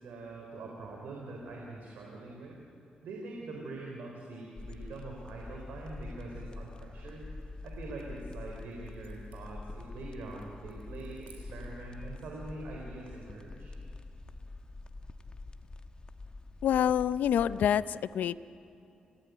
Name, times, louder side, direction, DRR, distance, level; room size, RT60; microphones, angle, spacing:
voice 1, 0.0-2.6 3.0-7.3 7.6-13.7, right 2 dB, 90° right, -1 dB, 4.1 m, -44 dB
sound 1, 4.6-17.7, left 3 dB, 35° left, 1.3 m, -45 dB
sound 2, 7.6-11.9, right 4 dB, 65° right, 6.0 m, -65 dB
voice 2, 16.6-18.4, left 9 dB, 90° left, 16 dB, 0.6 m, -27 dB
29.5 x 17.0 x 9.4 m, 2.8 s
cardioid pair, 85°, 3 cm